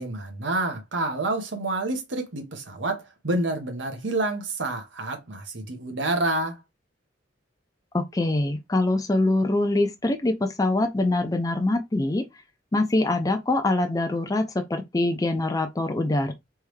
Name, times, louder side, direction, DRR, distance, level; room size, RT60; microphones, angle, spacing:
voice 1, 0.0-6.6, right 2 dB, 80° right, 1.1 m, -28 dB
voice 2, 7.9-12.2 12.7-16.3, left 2 dB, 20° left, 0.4 m, -24 dB
3.5 x 3.1 x 3.2 m
head